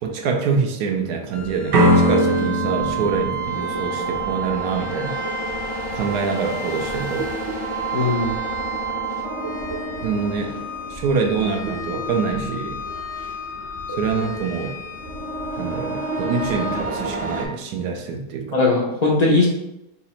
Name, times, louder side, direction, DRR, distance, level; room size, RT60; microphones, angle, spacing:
voice 1, 0.0-5.2 5.9-7.3 10.0-10.6 10.9-12.8 13.9-14.8 15.6-18.6, right 5 dB, 80° right, 4 dB, 1.2 m, -25 dB
sound 1, 1.3-17.5, right 2 dB, 40° right, 0.4 m, -29 dB
sound 2, 1.7-4.6, equal, 65° right, 1.2 m, -20 dB
voice 2, 7.9-8.3 18.5-19.5, left 3 dB, 55° left, -3 dB, 0.4 m, -18 dB
4.2 x 2.8 x 4.1 m, 0.90 s
omnidirectional pair, 1.7 m